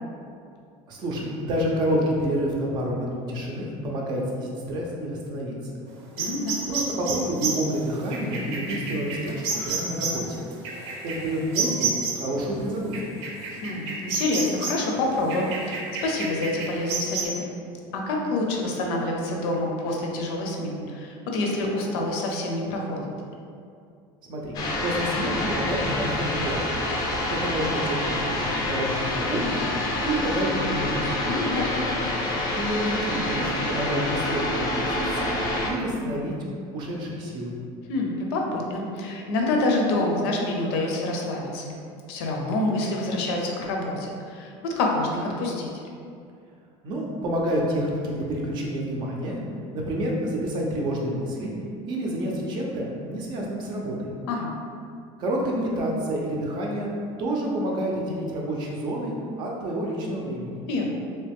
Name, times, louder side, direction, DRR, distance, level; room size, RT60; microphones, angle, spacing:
voice 1, 0.9-5.5 6.7-10.4 11.0-13.0 24.3-26.7 27.3-29.6 30.0-31.3 32.5-35.4 35.7-36.3 36.7-37.5 46.8-49.4 49.7-51.5 51.9-54.1 55.2-56.9 57.2-60.6, right 1 dB, 35° right, -2 dB, 0.5 m, -28 dB
voice 2, 6.2-6.6 13.5-17.5 17.9-23.0 31.3-31.8 37.9-41.7 42.1-45.7 54.3-54.5 60.7-60.8, left 2 dB, 80° left, 0 dB, 0.6 m, -27 dB
sound 1, 6.2-12.3 12.9-14.9 15.3-17.2, right 4 dB, 75° right, 0.7 m, -30 dB
sound 2, 24.5-35.7, left 1 dB, 30° left, 0.4 m, -27 dB
3.1 x 2.9 x 3.4 m, 2.4 s
cardioid pair, 180°, 13 cm